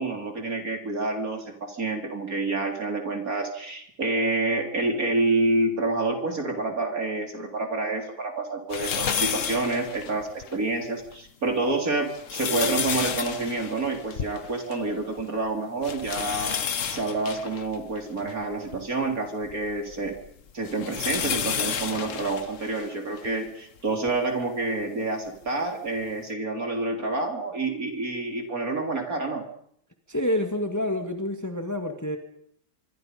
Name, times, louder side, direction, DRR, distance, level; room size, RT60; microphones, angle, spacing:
voice 1, 0.0-16.5 16.9-20.1 20.5-29.5, right 2 dB, 45° right, 4 dB, 4.1 m, -28 dB
sound 1, 8.7-10.6 11.1-11.2 11.9-14.9 15.2-15.3 15.8-18.8 19.5-23.4 24.1-24.2 25.5-25.6, left 7 dB, 50° left, 1.2 m, -31 dB
voice 2, 30.1-32.2, left 1 dB, 10° left, 5 dB, 2.4 m, -28 dB
25.0 x 24.5 x 5.4 m, 0.65 s
omnidirectional pair, 2.1 m